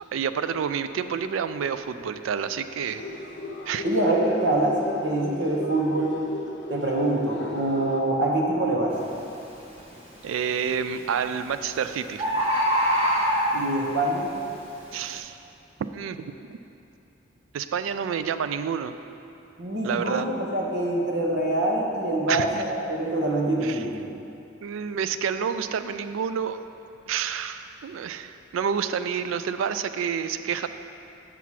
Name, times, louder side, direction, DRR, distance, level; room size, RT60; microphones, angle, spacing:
voice 1, 0.1-3.0 3.7-3.8 10.2-12.3 14.9-15.4 15.9-16.6 17.5-18.9 19.8-20.3 22.3-22.6 23.6-23.9 24.6-26.6 27.1-30.7, right 7 dB, 85° right, 11 dB, 0.3 m, -29 dB
sound 1, 2.9-8.0, left 2 dB, 65° left, 0.8 m, -37 dB
voice 2, 3.8-4.8 5.0-6.2 6.7-8.9 13.5-14.3 19.6-23.9, right 1 dB, 60° right, -2 dB, 1.1 m, -25 dB
Bird, 8.9-9.2 9.7-10.2 11.2-11.3 11.6-11.7 11.8-11.9 12.2-13.9 14.5-14.6, equal, 30° right, 1.2 m, -23 dB
6.9 x 5.8 x 4.7 m, 2.8 s
head